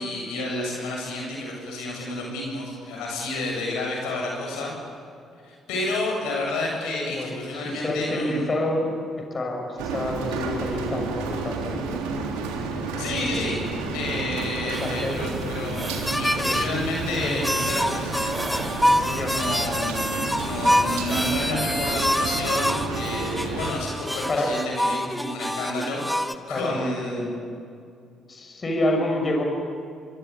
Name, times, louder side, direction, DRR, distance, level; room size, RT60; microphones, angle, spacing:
voice 1, 0.0-4.7 5.4-8.6 12.8-13.6 13.9-15.9 16.2-18.3 19.3-20.1 20.4-27.3, left 2 dB, 80° left, -1 dB, 7.8 m, -30 dB
voice 2, 7.1-8.9 9.3-12.0 14.5-15.2 16.4-16.8 17.2-17.5 19.1-19.3 24.3-24.5 26.5-27.5 28.3-29.4, left 1 dB, 40° left, 2 dB, 6.4 m, -28 dB
Rain, 9.8-23.7, right 4 dB, 85° right, 3.3 m, -31 dB
sound 1, 14.7-21.5, right 2 dB, 25° right, 6.4 m, -38 dB
sound 2, 16.1-16.7 17.4-26.3, equal, 5° left, 1.5 m, -26 dB
24.5 x 24.0 x 8.7 m, 2.4 s
hypercardioid pair, 50°, 0 cm